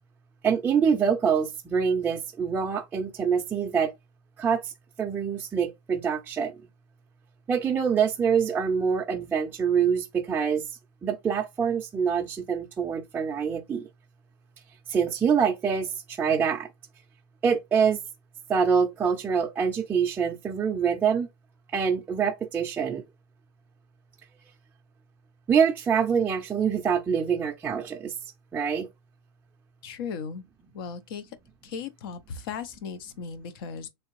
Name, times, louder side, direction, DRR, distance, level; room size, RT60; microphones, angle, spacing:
voice 1, 0.4-3.9 4.4-4.7 5.0-6.6 7.5-13.9 14.9-16.7 17.4-18.0 18.5-21.3 21.7-23.0 25.5-28.1 28.5-28.9, right 6 dB, 15° right, 0.4 m, -25 dB
voice 2, 29.8-30.4 30.7-31.4 31.6-33.9, left 6 dB, 65° left, 0.8 m, -37 dB
3.7 x 3.2 x 3.1 m
supercardioid pair, 140°, 12 cm